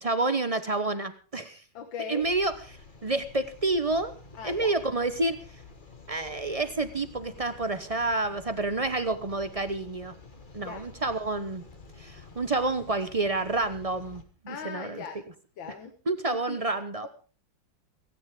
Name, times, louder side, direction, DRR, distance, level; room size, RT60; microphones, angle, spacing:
voice 1, 0.0-1.6 2.1-2.5 3.0-4.1 4.4-5.4 6.1-10.1 10.5-11.6 12.0-15.0 16.1-17.1, right 2 dB, 40° right, 11 dB, 0.5 m, -29 dB
voice 2, 1.7-2.3 4.3-4.7 10.6-10.8 14.5-15.2 15.6-15.9 16.3-16.6, left 7 dB, 80° left, 7 dB, 2.1 m, -39 dB
sound 1, 2.2-14.2, left 4 dB, 25° left, 1.7 m, -50 dB
17.0 x 16.5 x 3.7 m, 0.37 s
omnidirectional pair, 2.1 m